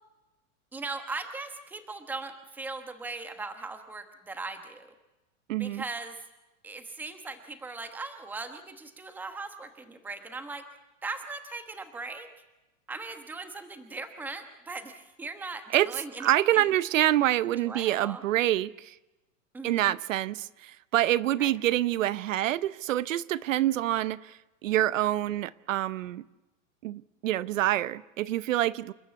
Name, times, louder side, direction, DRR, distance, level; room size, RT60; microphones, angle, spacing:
voice 1, 0.7-4.9 5.6-6.2 6.6-10.6 11.0-12.3 12.9-16.7 17.6-18.2 19.5-19.9 21.4-21.5, right 3 dB, 5° right, 1.1 m, -39 dB
voice 2, 5.5-5.8 15.7-15.9 16.2-19.0 19.6-26.2 26.8-28.9, right 14 dB, 75° right, 0.8 m, -26 dB
28.5 x 13.0 x 8.3 m
supercardioid pair, 170°, 39 cm